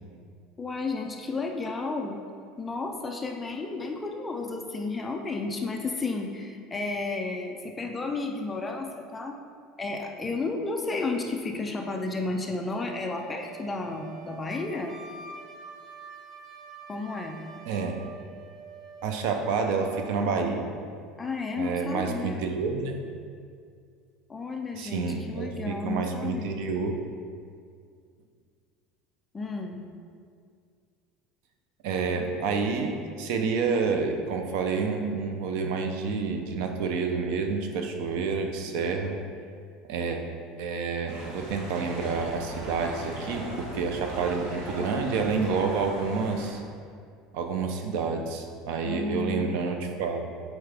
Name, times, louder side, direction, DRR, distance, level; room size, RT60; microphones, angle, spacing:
voice 1, 0.6-2.2 2.6-9.3 9.8-15.0 16.9-17.4 21.2-22.4 24.3-26.6 29.3-29.8 48.8-49.6, left 3 dB, 15° left, 3 dB, 0.4 m, -32 dB
Wind instrument woodwind instrument, 12.7-20.2, right 5 dB, 20° right, 0.7 m, -46 dB
voice 2, 17.7-18.0 19.0-20.7 21.5-23.0 24.8-27.0 31.8-39.2 39.9-40.2 40.6-46.6 47.3-50.3, right 5 dB, 65° right, 4 dB, 0.7 m, -29 dB
sound 1, 41.1-46.5, right 1 dB, 80° right, 1.6 m, -39 dB
8.1 x 4.6 x 3.4 m, 2.2 s
cardioid pair, 165°, 0 cm